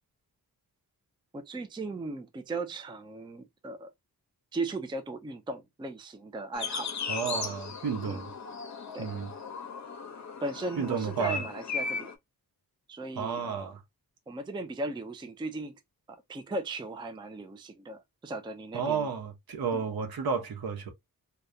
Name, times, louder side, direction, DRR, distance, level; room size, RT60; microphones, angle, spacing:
voice 1, 1.3-3.9 4.5-6.9 7.2-7.5 8.0-8.2 8.9-9.1 10.4-12.1 12.9-13.7 14.3-15.8 16.1-19.1 19.7-19.8, right 2 dB, 15° right, 0.4 m, -37 dB
sound 1, 6.5-12.1, left 5 dB, 50° left, 0.7 m, -37 dB
voice 2, 7.1-8.3 9.0-9.3 10.8-11.4 13.2-13.8 18.7-20.9, right 6 dB, 75° right, 0.9 m, -32 dB
3.5 x 2.2 x 2.6 m
wide cardioid pair, 140°, 37 cm